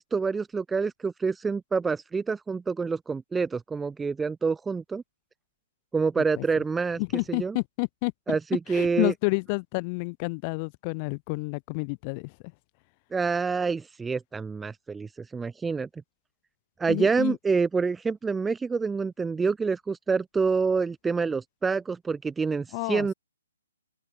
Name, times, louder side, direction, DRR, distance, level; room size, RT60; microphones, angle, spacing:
voice 1, 0.0-5.0 5.9-7.0 7.3-7.6 8.3-9.1 13.1-15.9 16.8-23.1, right 5 dB, 5° right, 0.7 m, -27 dB
voice 2, 7.0-8.1 8.7-12.3 16.9-17.4 22.7-23.1, left 32 dB, 25° left, 2.6 m, -29 dB
open air
hypercardioid pair, 155°, 0 cm